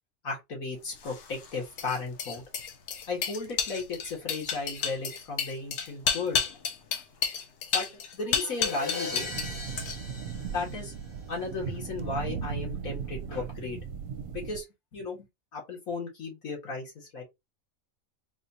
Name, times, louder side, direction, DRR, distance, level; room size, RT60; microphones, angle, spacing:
voice 1, 0.2-2.4 3.1-6.4 7.7-9.3 10.5-10.9 11.3-13.8 14.3-14.7 14.9-17.2, left 3 dB, 80° left, 2.2 m, -35 dB
sound 1, 1.0-9.5 9.8-10.2, left 6 dB, 60° left, 0.9 m, -31 dB
Crash cymbal, 8.4-11.4, left 4 dB, 30° left, 0.6 m, -39 dB
sound 2, 9.1-14.6, right 7 dB, 75° right, 1.0 m, -37 dB
4.1 x 2.6 x 2.8 m
omnidirectional pair, 1.5 m